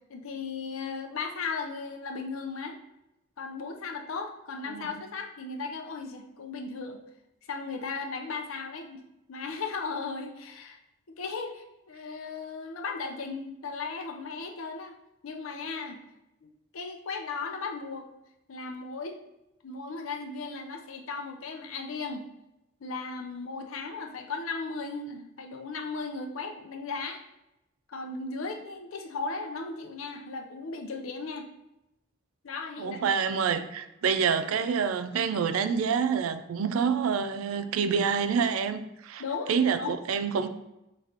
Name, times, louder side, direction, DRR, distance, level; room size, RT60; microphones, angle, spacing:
voice 1, 0.1-2.7 3.4-7.0 7.5-9.0 9.3-10.8 11.1-15.0 15.2-16.0 16.4-18.1 18.5-19.2 19.6-22.3 22.8-27.2 27.9-31.5 32.4-33.2 39.2-40.0, left 4 dB, 85° left, 0.6 m, -36 dB
voice 2, 32.8-39.2 39.5-40.5, right 6 dB, 85° right, 0.4 m, -27 dB
5.9 x 3.2 x 2.8 m
head